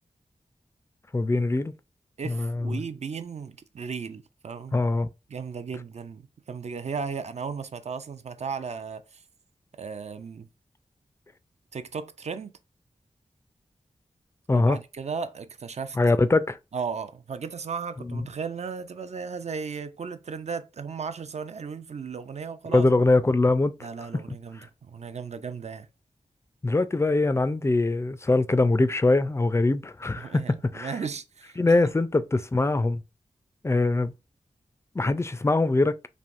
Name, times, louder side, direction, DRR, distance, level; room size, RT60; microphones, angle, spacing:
voice 1, 1.1-1.7 2.3-2.8 4.7-5.1 14.5-14.8 16.0-16.6 18.1-18.2 22.7-23.7 26.6-30.4 30.7-30.9 31.6-33.0 33.6-34.1 35.0-36.0, left 2 dB, 20° left, 0.3 m, -22 dB
voice 2, 2.2-4.8 5.3-9.2 9.8-10.5 11.7-12.5 14.5-16.0 16.7-22.9 23.8-25.9 30.2-31.9, right 5 dB, 55° right, 0.4 m, -35 dB
3.3 x 2.5 x 2.5 m
cardioid pair, 45°, 14 cm